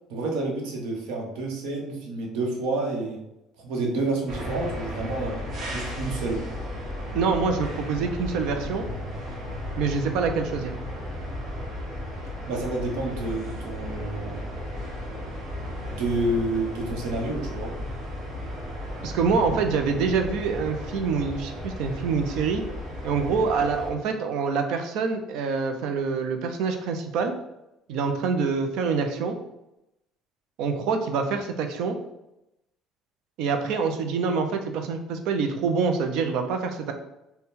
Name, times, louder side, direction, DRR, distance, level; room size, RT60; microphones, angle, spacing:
voice 1, 0.1-3.2 3.6-5.4 5.7-6.4 12.5-14.4 15.9-17.8 19.9-20.0, right 2 dB, 85° right, 1 dB, 0.9 m, -29 dB
sound 1, 4.3-23.9, left 1 dB, 40° right, 1.2 m, -34 dB
voice 2, 7.1-8.8 9.8-10.7 19.0-22.6 23.0-27.3 27.9-29.3 30.6-32.0 33.4-36.9, right 5 dB, 65° right, 6 dB, 0.5 m, -26 dB
4.2 x 2.2 x 3.6 m, 0.88 s
cardioid pair, 165°, 0 cm